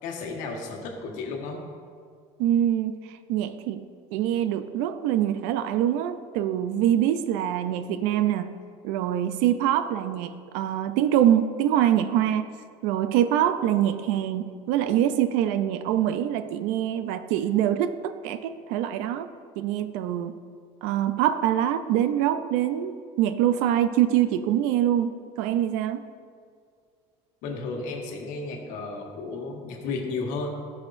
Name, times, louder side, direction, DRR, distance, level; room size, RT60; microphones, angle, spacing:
voice 1, 0.0-1.6 27.4-30.6, left 3 dB, 70° left, 1 dB, 1.5 m, -33 dB
voice 2, 2.4-3.0 3.3-8.5 8.8-12.5 12.8-19.3 19.6-20.3 20.8-26.1, right 11 dB, 80° right, 11 dB, 0.5 m, -24 dB
13.0 x 6.3 x 2.6 m, 2.1 s
cardioid pair, 125°, 13 cm